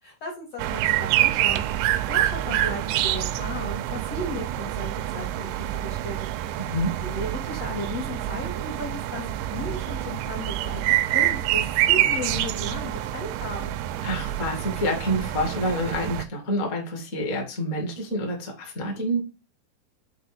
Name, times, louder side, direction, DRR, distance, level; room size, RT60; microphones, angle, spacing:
voice 1, 0.0-6.7 7.0-13.8, left 1 dB, 45° left, -3 dB, 2.2 m, -35 dB
sound 1, 0.6-16.3, right 13 dB, 85° right, 2.9 m, -26 dB
voice 2, 6.6-6.9 14.0-19.2, equal, 25° left, 1 dB, 1.7 m, -28 dB
7.1 x 4.5 x 5.0 m, 0.29 s
omnidirectional pair, 5.3 m